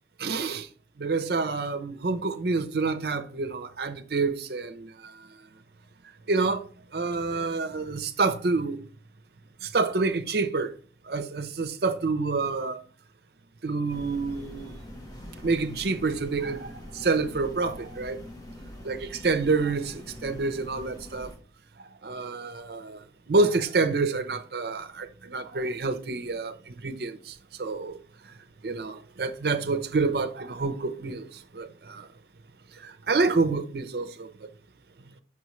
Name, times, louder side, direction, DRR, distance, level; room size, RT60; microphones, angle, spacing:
voice 1, 0.2-0.7 1.0-5.1 6.3-6.6 6.9-8.8 9.6-10.7 11.1-12.8 13.6-14.7 15.4-18.2 18.8-21.3 22.0-23.0 23.3-28.0 28.6-31.3 31.5-32.1 32.8-34.3, right 3 dB, 65° right, 0.6 m, -28 dB
sound 1, 13.9-21.4, left 1 dB, 20° left, 1.0 m, -44 dB
6.1 x 6.0 x 3.1 m
head